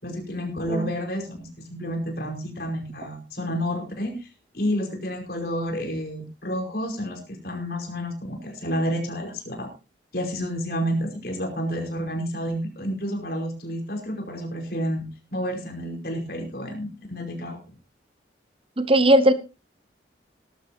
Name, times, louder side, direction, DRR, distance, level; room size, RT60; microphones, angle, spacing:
voice 1, 0.0-4.3 4.5-9.7 10.1-15.0 15.3-17.6, equal, 60° left, 3 dB, 5.1 m, -30 dB
voice 2, 18.8-19.3, right 1 dB, 30° right, 12 dB, 1.0 m, -18 dB
19.0 x 12.5 x 2.8 m, 0.29 s
head